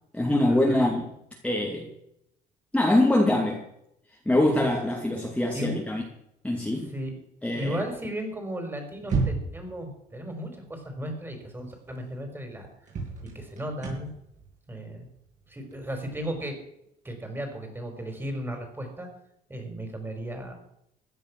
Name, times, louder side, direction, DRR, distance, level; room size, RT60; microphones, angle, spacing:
voice 1, 0.1-1.0 1.4-1.9 2.7-3.6 4.3-6.0 6.4-6.9 7.4-7.8, left 1 dB, 5° left, -1 dB, 2.6 m, -23 dB
voice 2, 4.3-4.7 5.5-5.8 6.7-7.1 7.6-12.7 13.3-14.1 14.7-15.1 15.5-16.6 17.0-19.1 19.5-20.5, equal, 15° right, 5 dB, 4.8 m, -35 dB
sound 1, 9.0-9.7 11.5-11.6 12.0-12.1 12.9-16.4, right 4 dB, 45° right, 7.0 m, -32 dB
16.0 x 10.5 x 6.2 m, 0.77 s
cardioid pair, 110°, 17 cm